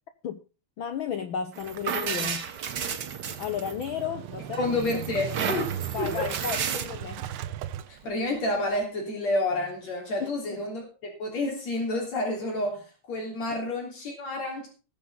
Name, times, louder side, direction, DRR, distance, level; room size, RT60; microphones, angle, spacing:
voice 1, 0.8-2.5 3.4-4.7 5.9-7.3 10.2-10.6 13.5-13.6, left 8 dB, 90° left, 1.1 m, -33 dB
sound 1, 1.5-4.1 4.5-6.9, right 7 dB, 55° right, 1.2 m, -32 dB
Motorcycle / Engine starting, 1.6-8.8, right 11 dB, 85° right, 1.2 m, -38 dB
voice 2, 4.6-6.3 7.9-14.7, left 2 dB, 65° left, 4.7 m, -29 dB
20.5 x 7.4 x 3.9 m
omnidirectional pair, 3.4 m